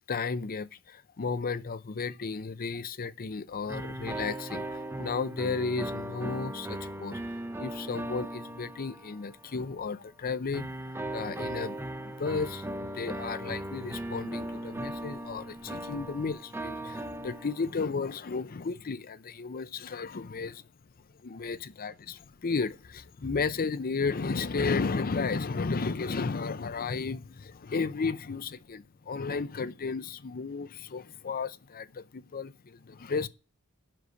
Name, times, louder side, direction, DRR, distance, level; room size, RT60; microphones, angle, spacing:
voice 1, 0.1-7.2 7.6-20.6 21.2-33.3, left 4 dB, 40° left, 0.5 m, -33 dB
sound 1, 3.7-9.5 10.5-17.9, right 1 dB, 10° right, 0.6 m, -38 dB
7.7 x 6.5 x 8.1 m
head